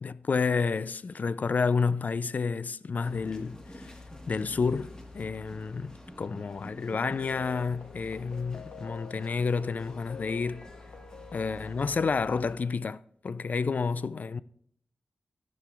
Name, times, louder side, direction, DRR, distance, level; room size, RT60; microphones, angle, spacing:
voice 1, 0.0-3.9 4.3-10.7 11.3-14.4, left 5 dB, 55° left, 0.3 m, -30 dB
sound 1, 3.0-12.5, left 1 dB, 20° left, 1.4 m, -48 dB
sound 2, 6.8-12.1, left 5 dB, 75° left, 0.8 m, -47 dB
12.5 x 11.5 x 2.4 m
wide cardioid pair, 90°, 3 cm